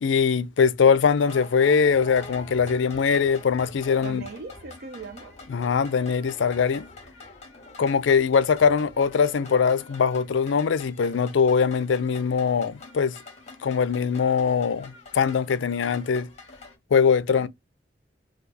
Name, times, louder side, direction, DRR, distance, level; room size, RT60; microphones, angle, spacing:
voice 1, 0.0-4.2 5.5-6.9 7.8-13.2 13.6-16.3 16.9-17.5, left 6 dB, 85° left, 0.4 m, -22 dB
sound 1, 1.1-16.8, left 2 dB, 40° left, 1.2 m, -45 dB
voice 2, 3.9-5.4 17.3-17.5, right 4 dB, 60° right, 0.5 m, -39 dB
4.5 x 2.4 x 2.7 m
head